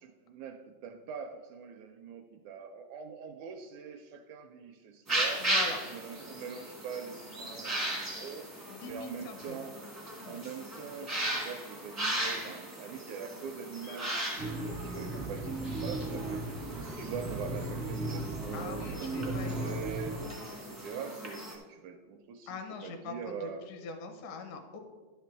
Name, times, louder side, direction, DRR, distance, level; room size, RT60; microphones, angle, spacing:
voice 1, 0.0-5.5 5.8-8.5 8.8-9.8 10.2-23.7, right 6 dB, 80° right, 5 dB, 1.8 m, -43 dB
sound 1, 5.1-21.5, right 1 dB, 20° right, 0.4 m, -37 dB
voice 2, 5.4-5.8 8.7-9.6 10.2-10.4 18.5-19.9 22.5-24.8, left 5 dB, 75° left, 5 dB, 2.3 m, -42 dB
sound 2, 14.4-20.3, right 2 dB, 60° right, 0.8 m, -36 dB
11.5 x 5.9 x 4.5 m, 1.4 s
omnidirectional pair, 3.8 m